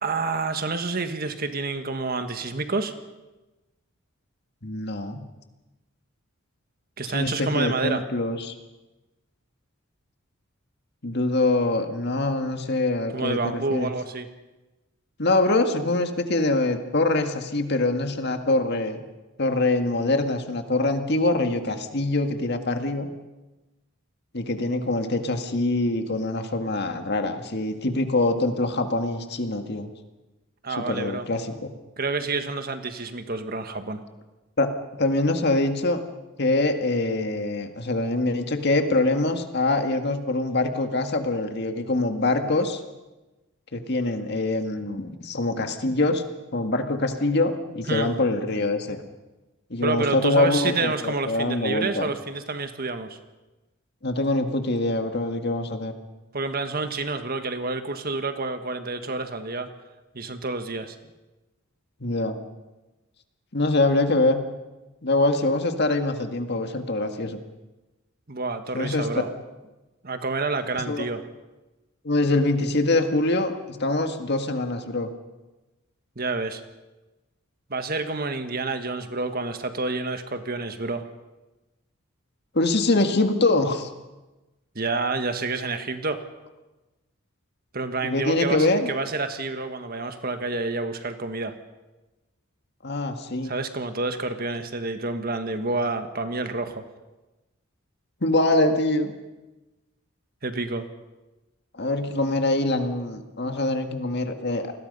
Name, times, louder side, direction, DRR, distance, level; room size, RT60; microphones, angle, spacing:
voice 1, 0.0-2.9 7.0-8.0 13.1-14.3 30.6-31.3 32.0-34.0 47.9-48.1 49.8-53.2 56.3-59.7 60.1-61.0 68.3-69.3 70.0-71.2 76.1-76.6 77.7-81.0 84.7-86.2 87.7-91.5 93.4-96.8 100.4-100.8, right 3 dB, 45° right, 8 dB, 1.5 m, -28 dB
voice 2, 4.6-5.2 7.1-8.5 11.0-13.9 15.2-19.0 19.4-23.1 24.3-29.9 30.8-31.7 34.6-36.0 36.4-42.8 43.7-46.2 46.5-49.0 49.7-52.1 54.0-55.9 62.0-62.4 63.5-64.4 65.0-67.4 68.7-69.2 70.9-71.1 72.0-75.1 82.5-83.9 88.0-88.9 92.8-93.5 98.2-99.1 101.8-104.7, left 2 dB, 50° left, 6 dB, 1.9 m, -24 dB
29.5 x 20.5 x 5.5 m, 1.1 s
head